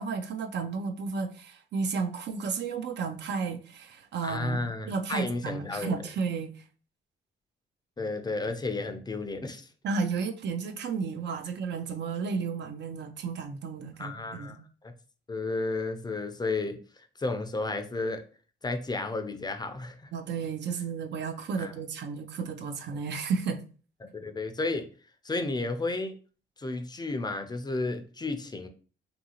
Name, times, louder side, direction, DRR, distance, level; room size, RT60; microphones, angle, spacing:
voice 1, 0.0-6.6 9.8-14.6 20.1-23.6, right 5 dB, 60° right, 7 dB, 0.5 m, -33 dB
voice 2, 4.2-6.0 8.0-9.7 14.0-14.9 15.3-18.2 18.6-20.1 21.6-21.7 24.1-24.9 25.2-26.2 26.6-28.7, left 3 dB, 20° left, 7 dB, 0.5 m, -32 dB
2.7 x 2.5 x 2.8 m, 0.37 s
cardioid pair, 90°, 20 cm